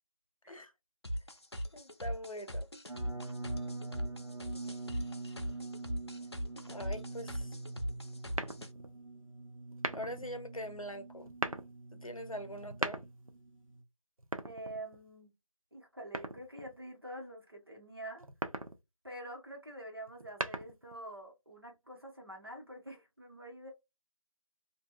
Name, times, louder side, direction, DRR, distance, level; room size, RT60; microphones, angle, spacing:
sound 1, 1.0-8.7, equal, 50° left, 0.4 m, -39 dB
voice 1, 1.7-2.7 6.7-7.6 9.9-11.3 11.9-13.0, equal, 80° left, 0.7 m, -43 dB
sound 2, 2.9-13.8, right 3 dB, 70° right, 1.0 m, -45 dB
sound 3, 8.3-8.9 9.7-10.3 11.2-11.7 12.6-13.4 14.2-15.1 16.1-16.8 18.2-18.8 20.1-21.0, right 2 dB, 90° right, 0.6 m, -38 dB
voice 2, 14.4-15.3 15.7-18.3 19.0-23.7, right 1 dB, 45° right, 1.2 m, -46 dB
2.6 x 2.3 x 2.4 m
figure-of-eight pair, 180°, 17 cm